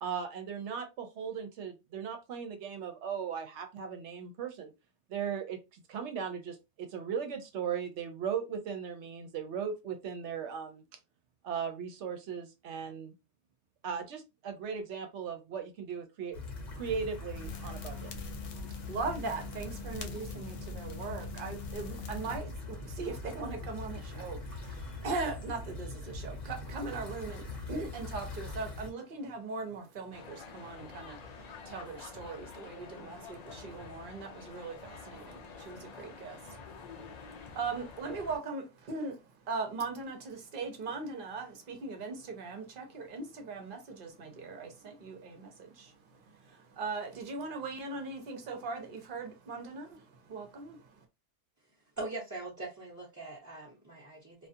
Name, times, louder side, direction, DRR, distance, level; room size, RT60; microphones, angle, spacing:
voice 1, 0.0-4.7 5.1-10.8 11.4-13.1 13.8-16.4 16.7-18.1, right 7 dB, 75° right, 1.0 m, -37 dB
sound 1, 16.3-28.9, left 2 dB, 40° left, 0.8 m, -42 dB
sound 2, 17.3-22.4, left 8 dB, 80° left, 0.9 m, -46 dB
voice 2, 18.5-51.0, right 3 dB, 50° right, 0.9 m, -40 dB
sound 3, 30.1-38.4, left 5 dB, 60° left, 0.4 m, -48 dB
voice 3, 52.0-54.5, right 2 dB, 15° right, 0.7 m, -41 dB
2.4 x 2.4 x 2.6 m
omnidirectional pair, 1.2 m